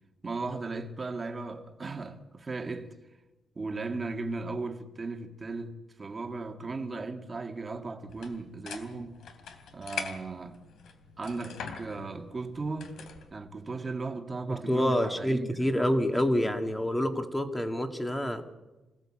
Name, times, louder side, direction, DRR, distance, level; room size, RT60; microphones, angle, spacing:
voice 1, 0.2-3.0 3.6-9.2 9.7-10.6 11.2-12.9 13.3-15.7, right 3 dB, 25° right, 1.9 m, -36 dB
sound 1, 8.1-13.3, left 6 dB, 70° left, 3.4 m, -43 dB
voice 2, 14.5-18.4, equal, 10° left, 2.0 m, -27 dB
28.0 x 17.5 x 8.8 m
wide cardioid pair, 160°, 0 cm